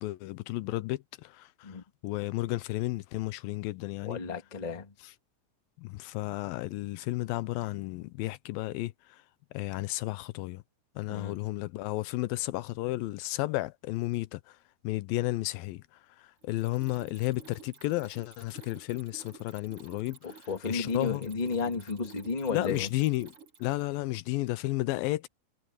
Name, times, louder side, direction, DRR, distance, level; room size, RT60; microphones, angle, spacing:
voice 1, 0.0-1.7 2.0-4.2 5.0-5.1 5.8-9.2 9.5-10.6 11.0-14.6 14.8-15.8 16.2-21.3 22.5-23.3 23.6-25.3, left 19 dB, 80° left, 2.3 m, -33 dB
voice 2, 4.1-4.9 11.1-11.3 20.2-22.9, left 4 dB, 50° left, 0.4 m, -33 dB
Mechanisms, 16.4-23.9, right 5 dB, 40° right, 3.4 m, -52 dB
omnidirectional pair, 4.3 m